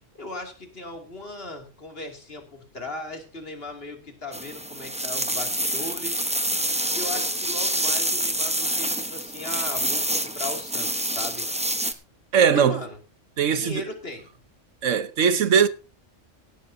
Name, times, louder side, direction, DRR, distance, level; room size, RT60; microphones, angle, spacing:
voice 1, 0.1-6.2 6.9-11.5 12.5-13.0 13.4-14.3, left 2 dB, 50° left, 2.9 m, -37 dB
sound 1, 4.3-11.9, right 1 dB, 5° right, 0.9 m, -27 dB
voice 2, 12.3-12.8 13.4-13.8 14.8-15.7, right 7 dB, 80° right, 1.3 m, -20 dB
17.0 x 13.0 x 2.8 m
omnidirectional pair, 1.3 m